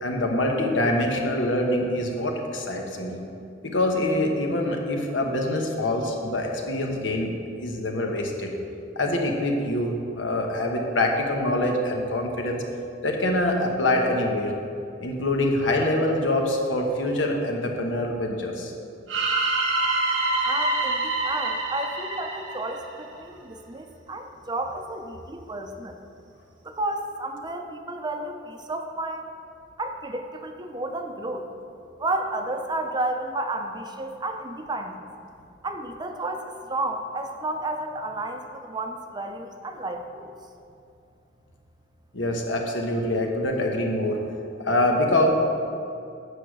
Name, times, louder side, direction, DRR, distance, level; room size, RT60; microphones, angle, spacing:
voice 1, 0.0-3.2 3.6-7.3 7.6-8.5 8.9-12.6 13.0-14.5 15.0-18.7 42.1-44.2 44.6-45.3, left 1 dB, 90° left, 1 dB, 1.1 m, -25 dB
sound 1, 19.1-23.1, right 2 dB, 85° right, 1.2 m, -26 dB
voice 2, 20.4-26.0 26.6-29.3 29.8-31.5 32.0-35.0 35.6-40.3, right 2 dB, 25° right, 5 dB, 0.6 m, -32 dB
8.4 x 4.9 x 6.1 m, 2.6 s
head